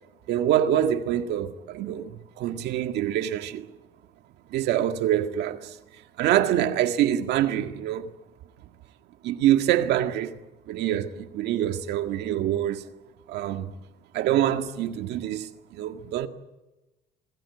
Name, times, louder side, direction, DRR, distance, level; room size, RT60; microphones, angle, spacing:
voice 1, 0.3-3.7 4.5-5.8 6.2-8.1 9.2-10.3 10.7-12.9 13.3-13.7 14.1-16.3, right 11 dB, 80° right, 1.9 m, -25 dB
26.5 x 20.0 x 8.2 m
cardioid pair, 110°, 17 cm